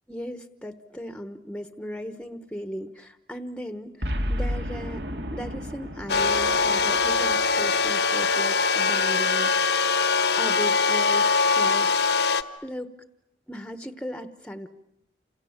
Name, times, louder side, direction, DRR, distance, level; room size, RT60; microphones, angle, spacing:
voice 1, 0.1-5.0 5.3-9.9 10.3-12.0 12.6-12.9 13.5-14.7, equal, 5° left, 10 dB, 1.0 m, -37 dB
Boom, 4.0-8.4, equal, 70° right, 2.1 m, -33 dB
sound 1, 6.1-12.4, left 4 dB, 70° left, 1.2 m, -22 dB
29.0 x 27.0 x 7.2 m, 0.83 s
head